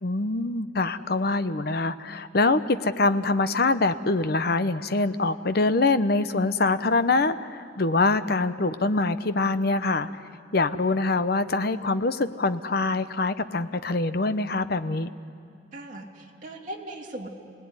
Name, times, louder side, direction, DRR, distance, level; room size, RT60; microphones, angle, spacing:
voice 1, 0.0-10.1 10.5-15.1, left 3 dB, 60° left, 12 dB, 0.9 m, -24 dB
voice 2, 15.7-17.3, right 1 dB, 45° right, -1 dB, 3.0 m, -38 dB
29.5 x 19.0 x 9.7 m, 2.4 s
head